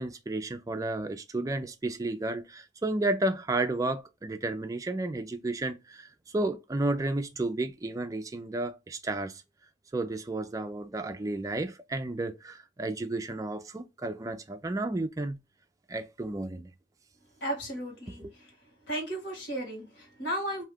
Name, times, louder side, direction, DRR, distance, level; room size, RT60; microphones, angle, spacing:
voice 1, 0.0-9.4 9.9-15.4 15.9-16.7 18.2-18.3, right 2 dB, 20° right, 0.3 m, -32 dB
voice 2, 17.4-18.2 18.9-20.6, right 1 dB, 65° left, 1.5 m, -34 dB
2.7 x 2.3 x 3.4 m
head